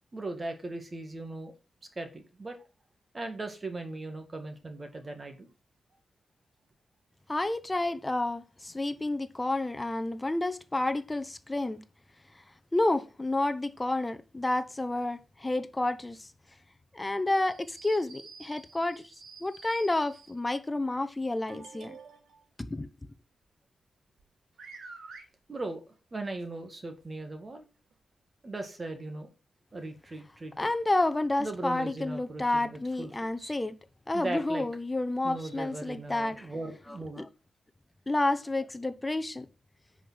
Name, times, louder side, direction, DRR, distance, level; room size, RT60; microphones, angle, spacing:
voice 1, 0.1-1.5 2.0-2.6 3.1-5.5 25.5-27.7 28.4-29.3 29.7-30.7 31.4-33.5 34.1-34.7 35.2-37.2, right 2 dB, 30° right, 2.0 m, -38 dB
voice 2, 7.3-11.8 12.7-16.3 16.9-19.0 19.4-22.0 22.6-22.9 30.6-33.7 34.1-36.5 37.2-37.3 38.1-39.5, left 2 dB, 20° left, 0.9 m, -30 dB
sound 1, 17.4-20.4 21.5-22.4 24.2-24.3 24.6-25.2 26.4-26.5 27.0-27.1 27.9-28.0, right 4 dB, 80° right, 2.7 m, -49 dB
10.0 x 5.1 x 6.3 m
cardioid pair, 90°, 0 cm